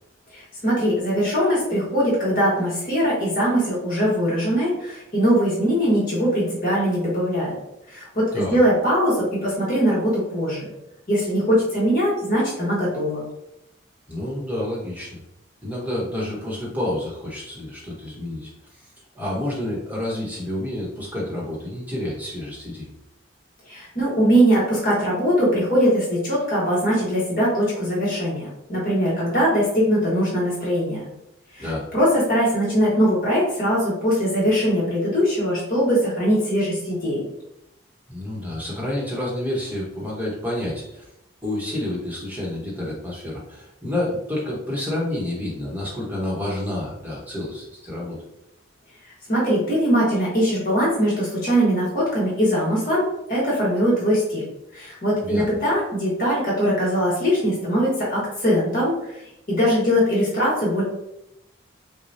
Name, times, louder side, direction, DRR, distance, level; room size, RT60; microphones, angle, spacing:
voice 1, 0.3-7.6 7.9-10.7 11.1-13.2 23.7-31.1 31.5-31.7 31.9-37.2 49.3-54.5 54.7-59.2 59.5-60.8, equal, 45° left, -6 dB, 1.4 m, -21 dB
voice 2, 14.1-15.2 15.6-18.5 19.1-22.9 31.6-31.9 38.1-41.0 41.4-48.2 55.2-55.4, left 1 dB, 10° right, -4 dB, 1.1 m, -29 dB
6.2 x 2.3 x 2.7 m, 0.83 s
head